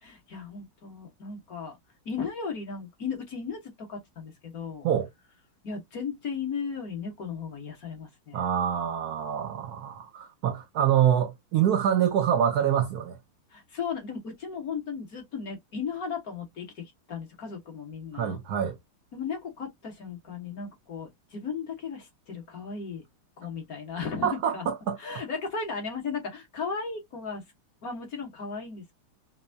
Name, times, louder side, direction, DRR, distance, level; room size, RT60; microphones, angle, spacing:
voice 1, 0.0-1.8 2.0-4.9 5.6-8.4 13.5-18.4 19.1-23.0 23.4-24.7 25.0-27.4 27.8-28.9, left 5 dB, 50° left, 1.5 m, -36 dB
voice 2, 8.3-13.2 18.1-18.8 24.2-25.0, right 9 dB, 75° right, 0.9 m, -25 dB
5.5 x 2.0 x 2.6 m
omnidirectional pair, 2.3 m